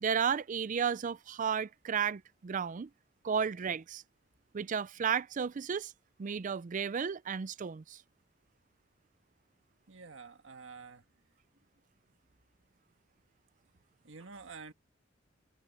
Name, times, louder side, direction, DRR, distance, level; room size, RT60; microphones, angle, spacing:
voice 1, 0.0-2.9 3.2-4.0 4.5-5.9 6.2-8.0, right 7 dB, 40° right, 0.4 m, -33 dB
voice 2, 9.9-11.0 14.0-14.7, right 4 dB, 80° right, 1.6 m, -49 dB
head